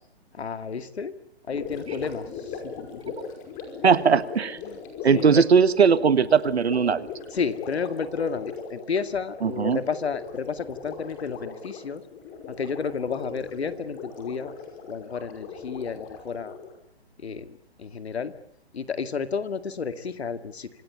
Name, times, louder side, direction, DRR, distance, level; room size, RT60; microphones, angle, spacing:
voice 1, 0.3-1.1 1.5-3.0 4.6-4.8 5.1-5.4 7.3-12.0 12.5-14.5 14.9-16.5 17.2-17.5 17.8-18.3 18.7-20.7, left 5 dB, 80° left, 11 dB, 2.2 m, -31 dB
Gurgling, 1.5-16.8, left 5 dB, 25° left, 5.4 m, -39 dB
voice 2, 3.8-4.6 5.0-7.1 9.4-9.8, right 6 dB, 85° right, 14 dB, 1.6 m, -19 dB
26.5 x 18.5 x 8.5 m, 0.69 s
hypercardioid pair, 145°, 31 cm